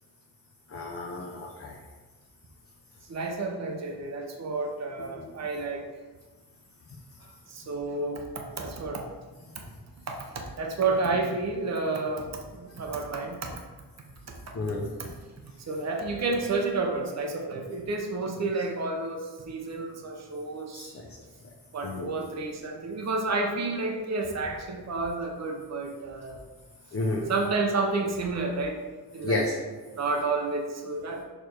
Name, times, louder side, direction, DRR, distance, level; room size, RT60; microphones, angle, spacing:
voice 1, 0.7-1.8 5.2-5.3 14.5-14.9 20.7-21.1 21.8-22.1 26.9-27.3 29.2-29.5, left 2 dB, 35° left, 0 dB, 0.6 m, -31 dB
voice 2, 3.1-5.8 7.5-9.1 10.1-13.5 14.5-14.6 15.0-15.1 15.7-21.0 21.7-26.4 27.3-28.8 29.1-29.5 30.0-31.2, right 3 dB, 40° right, 2 dB, 0.7 m, -30 dB
6.5 x 3.2 x 4.5 m, 1.3 s
wide cardioid pair, 170°, 42 cm